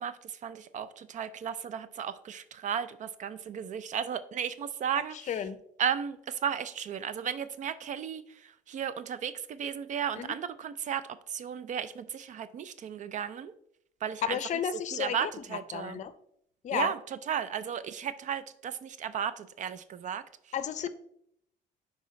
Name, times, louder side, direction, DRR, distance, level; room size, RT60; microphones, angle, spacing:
voice 1, 0.0-5.4 5.8-13.5 14.0-14.4 14.9-16.0 16.7-20.5, right 8 dB, 45° right, 14 dB, 0.4 m, -35 dB
voice 2, 5.3-5.6 10.2-10.4 14.2-15.3 15.7-16.1 16.6-16.9 20.5-20.9, left 9 dB, 45° left, 13 dB, 0.6 m, -32 dB
7.9 x 4.7 x 3.1 m, 0.71 s
cardioid pair, 110°, 17 cm